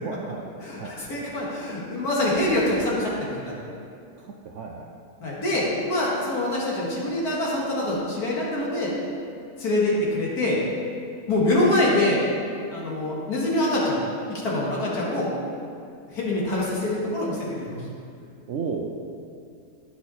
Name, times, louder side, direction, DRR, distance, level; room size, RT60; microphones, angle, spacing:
voice 1, 0.0-0.4 0.8-0.9 4.2-4.9 18.5-18.9, right 5 dB, 65° right, 1 dB, 0.7 m, -33 dB
voice 2, 0.6-3.3 5.2-8.9 9.6-10.6 11.3-12.2 12.7-14.0 14.4-15.3 16.1-17.8, left 1 dB, 65° left, -5 dB, 2.1 m, -25 dB
9.7 x 5.8 x 4.3 m, 2.4 s
omnidirectional pair, 1.8 m